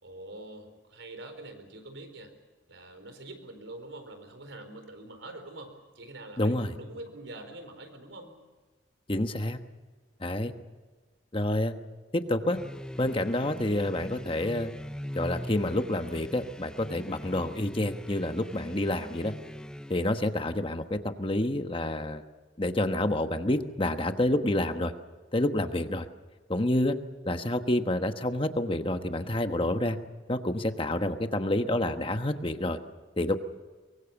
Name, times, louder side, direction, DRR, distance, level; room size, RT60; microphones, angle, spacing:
voice 1, 0.0-2.3 2.7-8.4, right 2 dB, 90° right, 7 dB, 4.4 m, -45 dB
voice 2, 6.4-6.8 9.1-9.6 10.2-10.5 11.3-11.7 12.1-12.6 13.0-14.7 15.1-19.3 19.9-22.2 22.6-24.9 25.3-26.1 26.5-27.0 27.2-30.0 30.3-32.8 33.2-33.4, left 1 dB, 30° left, 8 dB, 1.2 m, -28 dB
sound 1, 12.5-20.3, equal, 5° left, 0.6 m, -41 dB
23.5 x 23.5 x 7.2 m, 1.3 s
head